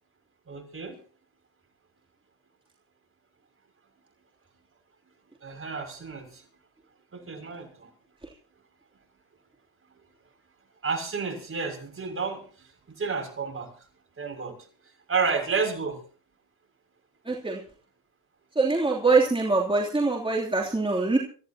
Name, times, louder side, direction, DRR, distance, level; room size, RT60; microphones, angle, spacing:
voice 1, 0.5-0.9 5.4-6.4 7.1-7.7 10.8-12.4 13.0-13.7 14.2-14.5 15.1-16.0, right 5 dB, 40° right, 4 dB, 6.5 m, -30 dB
voice 2, 17.3-17.6 18.6-21.2, right 3 dB, 15° right, -1 dB, 3.0 m, -23 dB
26.5 x 15.0 x 2.9 m, 0.41 s
cardioid pair, 75°, 35 cm